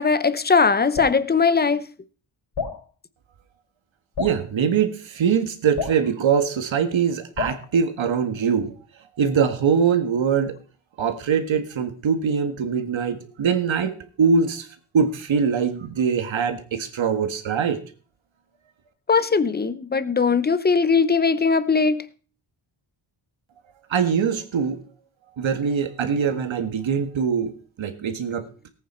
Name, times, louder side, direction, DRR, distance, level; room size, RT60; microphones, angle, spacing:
voice 1, 0.0-1.9 19.1-22.0, left 5 dB, 20° left, 0.7 m, -20 dB
Drip, 0.9-1.2 2.5-2.8 4.1-4.4 5.7-6.0 7.4-7.6, left 6 dB, 60° left, 5.4 m, -28 dB
voice 2, 4.2-8.7 9.2-10.6 11.0-14.7 14.9-17.8 23.9-24.8 25.4-28.5, right 6 dB, 70° right, 1.7 m, -23 dB
18.0 x 9.0 x 4.4 m
wide cardioid pair, 170°, 48 cm